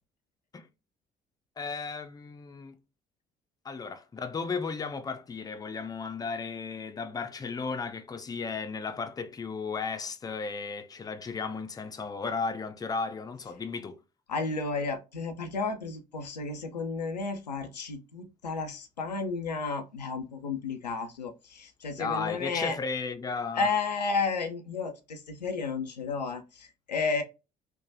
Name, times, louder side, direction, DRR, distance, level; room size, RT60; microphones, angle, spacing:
voice 1, 1.6-2.8 3.6-14.0 22.0-23.7, left 4 dB, 20° left, 0.5 m, -35 dB
voice 2, 14.3-22.8 23.5-27.2, left 4 dB, 90° left, 0.4 m, -32 dB
3.2 x 2.1 x 2.6 m
figure-of-eight pair, 50°, 21 cm